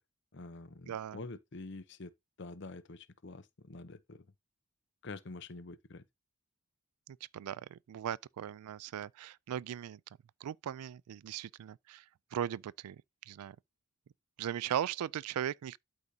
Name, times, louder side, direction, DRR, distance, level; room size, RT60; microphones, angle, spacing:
voice 1, 0.3-2.1 2.4-4.3 5.0-6.0, left 3 dB, 50° left, 0.7 m, -47 dB
voice 2, 0.9-1.2 7.1-10.0 10.4-12.0 12.3-13.6 14.4-15.8, right 10 dB, 85° right, 0.3 m, -38 dB
12.0 x 4.8 x 2.8 m
head